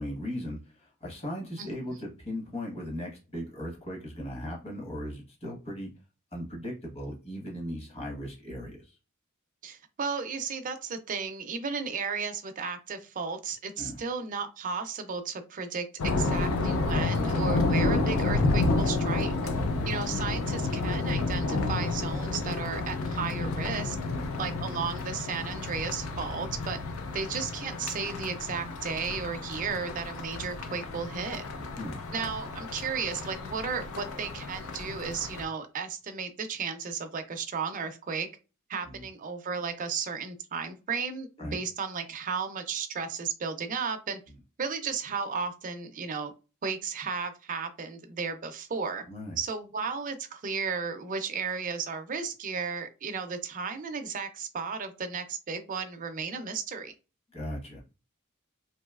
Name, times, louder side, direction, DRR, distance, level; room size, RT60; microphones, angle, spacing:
voice 1, 0.0-5.9 6.3-9.0 13.8-14.0 19.5-19.7 24.1-24.3 31.6-32.0 38.8-39.0 41.4-41.6 49.1-49.4 57.3-57.8, equal, 30° left, 1.1 m, -38 dB
voice 2, 9.6-19.3 19.9-24.0 24.4-26.8 27.1-31.4 32.1-38.3 38.7-44.2 44.6-46.3 46.6-49.0 49.4-56.9, right 5 dB, 40° right, 0.4 m, -34 dB
sound 1, 16.0-35.4, left 3 dB, 70° left, 0.5 m, -30 dB
3.0 x 2.7 x 2.3 m
head